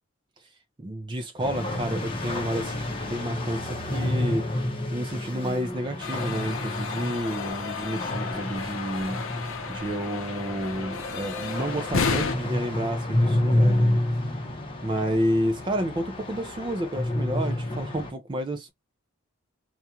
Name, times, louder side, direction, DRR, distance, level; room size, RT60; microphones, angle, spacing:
voice 1, 0.8-9.2 9.7-14.0 14.8-18.7, equal, 25° right, 0.4 m, -30 dB
sound 1, 1.4-18.1, left 1 dB, 25° left, 0.7 m, -29 dB
sound 2, 6.0-12.4, left 4 dB, 80° left, 0.6 m, -32 dB
2.4 x 2.2 x 2.8 m
head